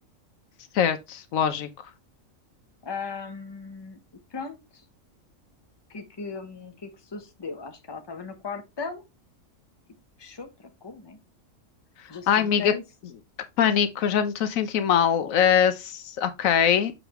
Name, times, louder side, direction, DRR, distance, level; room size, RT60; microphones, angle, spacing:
voice 1, 0.7-1.7 12.3-12.7 13.6-16.9, left 8 dB, 90° left, 1.2 m, -22 dB
voice 2, 2.8-4.0 4.3-4.8 5.9-9.0 10.2-11.2 12.1-12.8, left 4 dB, 20° left, 0.9 m, -37 dB
6.7 x 5.1 x 3.0 m
omnidirectional pair, 1.4 m